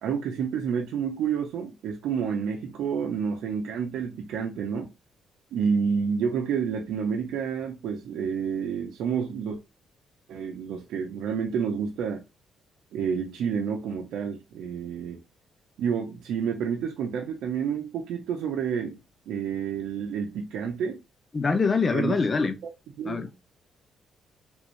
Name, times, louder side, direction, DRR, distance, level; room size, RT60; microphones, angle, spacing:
voice 1, 0.0-4.9 5.5-9.6 10.3-12.2 12.9-15.2 15.8-19.0 19.3-21.0 21.9-22.2 23.0-23.2, right 7 dB, 80° right, 0.7 m, -29 dB
voice 2, 21.3-22.6 23.0-23.3, left 4 dB, 35° left, 0.7 m, -24 dB
3.5 x 3.0 x 2.6 m
cardioid pair, 90°, 0 cm